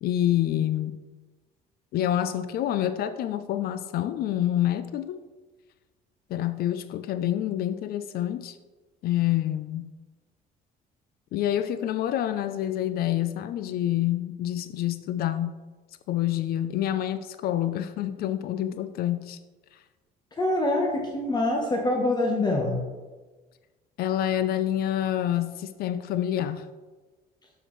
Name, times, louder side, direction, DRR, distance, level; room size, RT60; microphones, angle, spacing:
voice 1, 0.0-1.0 1.9-5.2 6.3-8.6 9.0-9.9 11.3-15.6 16.1-19.4 24.0-26.7, left 12 dB, 65° left, 12 dB, 0.4 m, -27 dB
voice 2, 20.4-22.8, left 2 dB, 25° left, 0 dB, 1.0 m, -25 dB
6.8 x 5.7 x 3.1 m, 1.3 s
cardioid pair, 110°, 17 cm